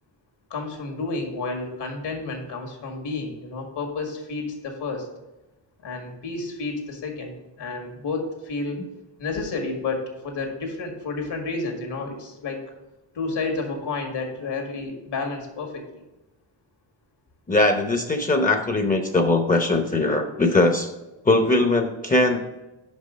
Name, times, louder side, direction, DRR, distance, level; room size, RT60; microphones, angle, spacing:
voice 1, 0.5-5.1 5.8-8.8 9.2-12.6 13.1-16.0, left 3 dB, 75° left, 2 dB, 1.9 m, -31 dB
voice 2, 17.5-20.9 21.2-22.4, left 2 dB, 20° left, 5 dB, 0.7 m, -20 dB
5.7 x 5.4 x 5.1 m, 1.0 s
cardioid pair, 100°, 42 cm